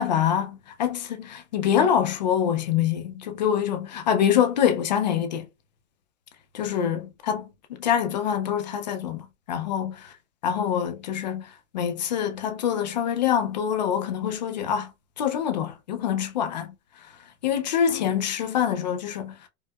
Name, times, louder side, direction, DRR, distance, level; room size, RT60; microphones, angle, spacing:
voice 1, 0.0-5.5 6.5-7.4 7.7-10.1 10.4-14.9 15.2-16.7 17.4-19.3, left 9 dB, 35° left, 0.4 m, -25 dB
4.6 x 2.1 x 2.2 m
supercardioid pair, 175°, 41 cm